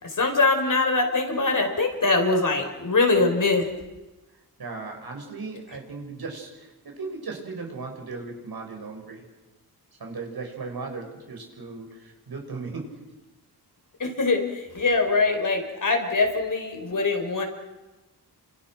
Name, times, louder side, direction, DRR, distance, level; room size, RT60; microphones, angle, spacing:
voice 1, 0.0-3.6 14.0-17.4, left 3 dB, 55° left, 4 dB, 5.1 m, -23 dB
voice 2, 4.6-9.3 10.0-13.0, right 4 dB, 70° right, 2 dB, 6.5 m, -37 dB
30.0 x 26.5 x 6.2 m, 1.1 s
wide cardioid pair, 130°, 38 cm